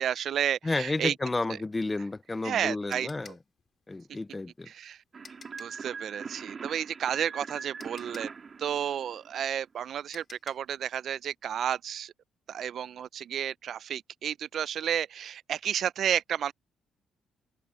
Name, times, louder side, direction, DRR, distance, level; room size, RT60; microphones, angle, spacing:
voice 1, 0.0-1.1 2.4-3.1 4.7-5.0 5.6-8.3 8.6-12.1 12.5-16.5, right 9 dB, 65° right, 0.4 m, -31 dB
voice 2, 0.6-3.4 3.9-4.7, left 2 dB, 20° left, 0.3 m, -31 dB
sound 1, 2.0-5.9 7.3-7.4 7.8-10.8, left 5 dB, 40° left, 3.7 m, -53 dB
sound 2, 5.1-9.6, right 5 dB, 40° right, 2.2 m, -42 dB
open air
cardioid pair, 90°, 0 cm